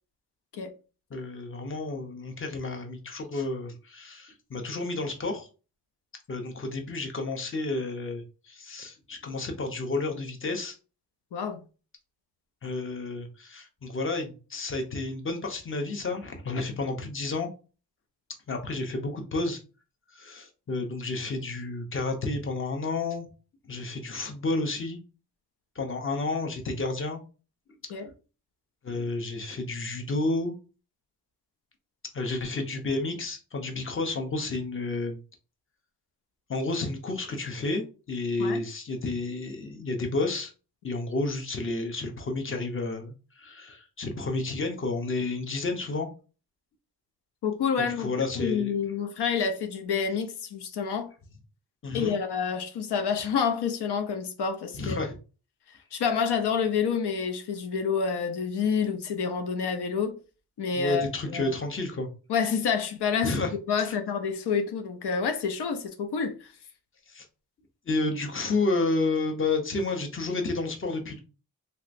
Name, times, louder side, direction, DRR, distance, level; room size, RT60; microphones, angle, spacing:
voice 1, 1.1-5.5 6.3-10.7 12.6-17.5 18.5-19.6 20.1-23.3 23.6-25.0 25.8-27.2 28.8-30.5 32.1-35.2 36.5-40.5 40.8-46.1 47.8-48.7 51.8-52.2 54.7-55.2 60.7-62.1 63.2-63.5 63.8-63.9 67.1-67.2 67.9-71.2, left 3 dB, 30° left, 0.7 m, -31 dB
voice 2, 47.4-51.1 51.9-55.0 55.7-60.2 60.6-61.5 62.3-66.5, left 6 dB, 85° left, 0.6 m, -28 dB
3.2 x 2.8 x 2.5 m
wide cardioid pair, 95°, 39 cm